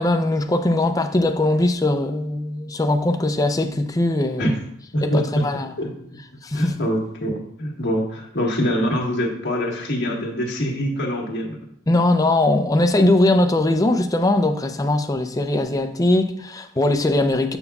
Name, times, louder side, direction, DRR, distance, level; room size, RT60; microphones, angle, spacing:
voice 1, 0.0-4.6 5.0-5.7 6.4-6.8 11.9-17.6, left 2 dB, 15° left, 0.4 m, -20 dB
voice 2, 4.9-5.5 5.8-6.2 6.5-11.6, equal, 60° left, 1.5 m, -24 dB
7.0 x 6.8 x 2.3 m
head